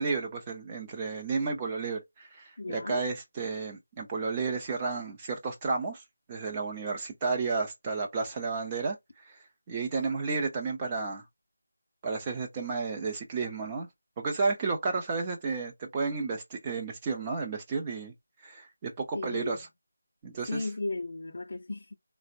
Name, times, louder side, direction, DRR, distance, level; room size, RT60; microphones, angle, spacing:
voice 1, 0.0-6.0 6.3-9.0 9.7-11.2 12.0-13.9 14.2-18.1 18.4-19.6 20.2-20.7, right 4 dB, 15° right, 0.5 m, -32 dB
voice 2, 2.6-3.0 19.1-19.6 20.5-22.0, left 2 dB, 50° left, 0.5 m, -35 dB
4.2 x 2.0 x 2.6 m
figure-of-eight pair, 175°, 0 cm